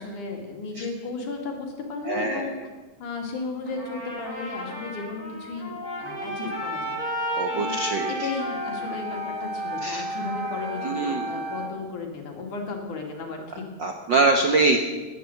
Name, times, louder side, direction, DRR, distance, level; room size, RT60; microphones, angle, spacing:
voice 1, 0.0-2.6 3.0-7.0 7.5-7.8 8.1-13.6, left 4 dB, 80° left, 2 dB, 3.9 m, -34 dB
voice 2, 2.0-2.5 6.4-6.5 7.4-8.3 9.8-10.0 10.8-11.3 13.8-14.8, right 3 dB, 65° right, 4 dB, 1.1 m, -24 dB
Trumpet, 3.7-11.7, left 1 dB, 25° left, 7.5 m, -35 dB
Wind instrument woodwind instrument, 5.8-11.8, right 1 dB, 45° right, 0.7 m, -34 dB
17.5 x 10.5 x 7.8 m, 1.2 s
omnidirectional pair, 3.5 m